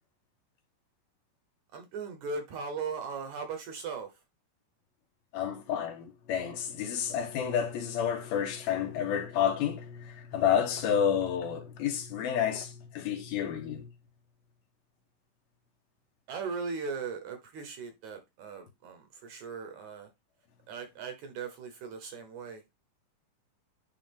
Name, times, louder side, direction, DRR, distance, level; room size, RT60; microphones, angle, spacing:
voice 1, 1.7-4.1 16.3-20.1 20.7-22.7, right 5 dB, 65° right, 2.1 m, -38 dB
voice 2, 5.3-13.9, left 8 dB, 80° left, 3.2 m, -30 dB
9.9 x 3.7 x 3.5 m
omnidirectional pair, 4.2 m